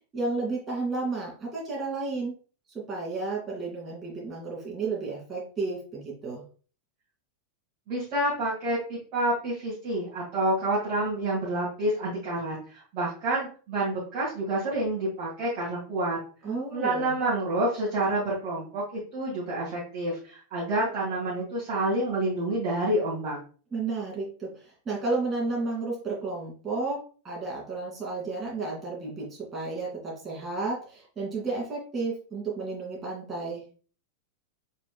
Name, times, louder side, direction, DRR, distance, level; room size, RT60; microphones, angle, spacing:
voice 1, 0.1-2.3 2.7-6.4 16.4-17.1 23.7-33.6, right 3 dB, 20° right, -3 dB, 2.3 m, -32 dB
voice 2, 7.9-12.6 12.9-16.2 16.7-23.4, right 1 dB, 40° right, -9 dB, 2.1 m, -28 dB
5.1 x 4.2 x 2.3 m, 0.39 s
figure-of-eight pair, 90°, 0 cm